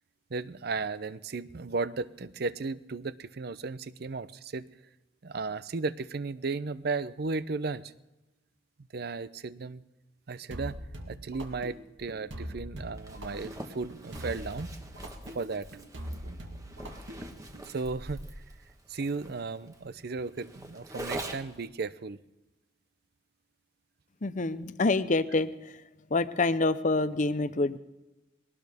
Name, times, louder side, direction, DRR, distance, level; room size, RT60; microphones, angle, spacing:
voice 1, 0.3-4.7 5.2-7.9 8.9-9.8 10.3-10.8 11.1-14.7 15.3-16.4 17.6-18.2 18.9-22.2, right 4 dB, 55° right, 16 dB, 0.6 m, -35 dB
sound 1, 10.5-17.7, equal, 75° right, 2.2 m, -42 dB
Zipper (clothing), 13.0-21.7, right 1 dB, 15° right, 1.3 m, -44 dB
voice 2, 24.2-25.8 26.1-27.8, left 3 dB, 40° left, 13 dB, 0.7 m, -27 dB
21.5 x 18.0 x 3.5 m, 1.0 s
head